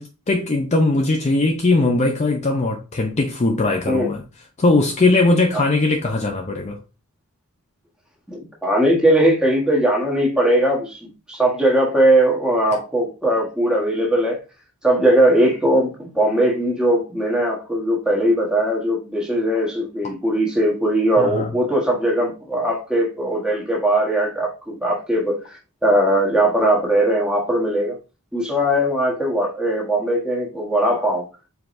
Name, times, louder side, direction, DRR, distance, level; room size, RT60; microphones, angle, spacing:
voice 1, 0.0-4.2 4.6-6.8 12.7-12.8 21.2-21.5, left 2 dB, 30° left, 0.5 m, -19 dB
voice 2, 8.3-14.4 14.8-25.4 25.8-28.0 28.3-31.3, right 1 dB, 5° right, 1.2 m, -19 dB
4.7 x 3.7 x 2.6 m
head